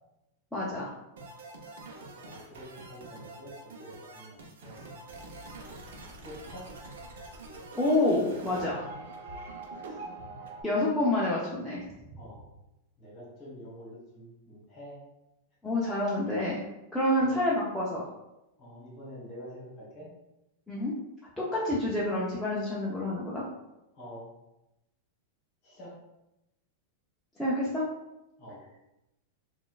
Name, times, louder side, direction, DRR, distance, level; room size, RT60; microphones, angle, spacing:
voice 1, 0.5-0.9 7.7-8.8 10.6-11.8 12.1-12.2 15.6-16.6 16.9-18.1 20.7-20.9 21.4-23.5 27.4-27.8, left 1 dB, ahead, -8 dB, 0.4 m, -28 dB
sound 1, 1.2-10.6, right 2 dB, 75° right, 0.6 m, -44 dB
voice 2, 2.2-4.8 6.2-6.7 9.8-10.1 12.2-12.5 13.0-15.0 17.2-17.4 18.6-20.1 23.9-24.3 25.6-25.9 28.4-28.6, equal, 30° left, -4 dB, 1.2 m, -47 dB
3.9 x 2.2 x 2.3 m, 0.93 s
supercardioid pair, 170°, 0 cm